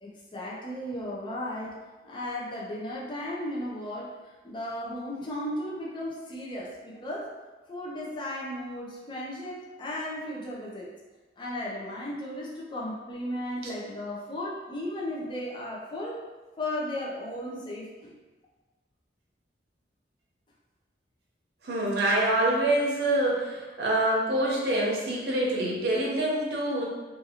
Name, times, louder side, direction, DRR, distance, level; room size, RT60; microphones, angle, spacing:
voice 1, 0.0-1.8 2.0-7.3 7.7-10.9 11.4-16.2 16.6-18.1, left 1 dB, 25° left, -4 dB, 0.5 m, -35 dB
voice 2, 21.6-26.8, right 1 dB, 65° right, -3 dB, 0.7 m, -26 dB
2.6 x 2.4 x 2.7 m, 1.2 s
head